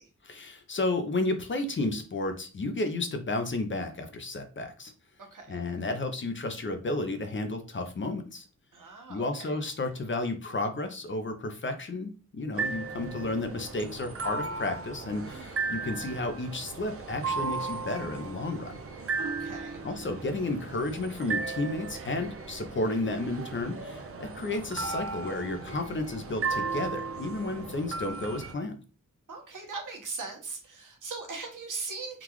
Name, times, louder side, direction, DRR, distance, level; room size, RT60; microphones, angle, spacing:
voice 1, 0.2-4.9 5.5-8.4 9.1-18.7 19.8-28.8, left 2 dB, 40° left, 6 dB, 0.6 m, -32 dB
voice 2, 5.3-5.6 8.7-9.6 15.3-15.9 19.2-19.8 29.3-32.2, right 4 dB, 75° right, 1 dB, 1.1 m, -40 dB
sound 1, 12.5-28.5, right 4 dB, 45° right, 0.6 m, -36 dB
3.7 x 2.4 x 3.0 m, 0.36 s
wide cardioid pair, 95°, 31 cm